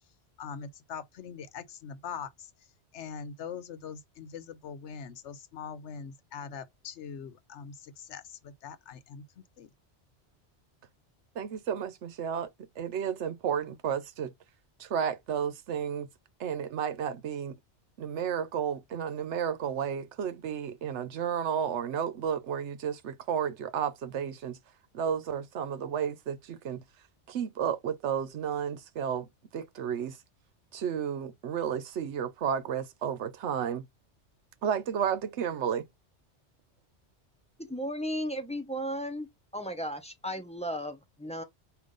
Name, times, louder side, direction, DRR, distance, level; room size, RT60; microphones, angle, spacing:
voice 1, 0.4-2.5 2.9-9.7, left 6 dB, 75° left, 1.0 m, -42 dB
voice 2, 11.4-12.5 12.8-14.3 14.8-16.1 16.4-17.6 18.0-24.6 24.9-26.8 27.3-29.3 29.5-30.2 30.7-33.8 34.6-35.8, right 8 dB, 75° right, 1.0 m, -32 dB
voice 3, 37.6-39.3 39.5-41.4, equal, 5° left, 0.7 m, -35 dB
5.0 x 2.6 x 3.9 m
omnidirectional pair, 1.2 m